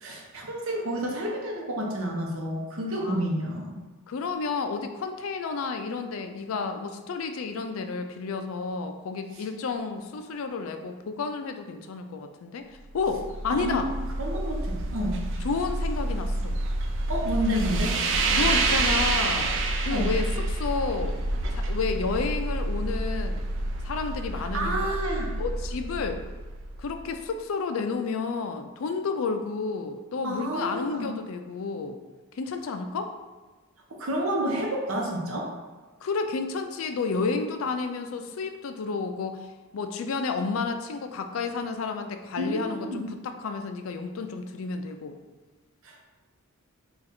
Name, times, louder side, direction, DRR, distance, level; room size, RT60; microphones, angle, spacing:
voice 1, 0.0-3.8 13.5-15.2 17.1-18.0 19.9-20.1 24.5-25.3 30.2-31.1 33.9-35.5 42.4-43.1 45.8-46.0, equal, 80° right, 0 dB, 0.8 m, -30 dB
voice 2, 3.0-3.3 4.1-12.7 12.9-13.9 15.4-16.6 18.3-19.5 19.8-21.2 21.5-23.4 23.8-24.7 25.4-26.2 26.8-32.0 32.3-33.1 36.0-45.2, left 4 dB, 75° left, 7 dB, 0.4 m, -31 dB
sound 1, 12.9-27.1, right 2 dB, 60° right, 0.4 m, -28 dB
3.8 x 2.4 x 4.2 m, 1.3 s
head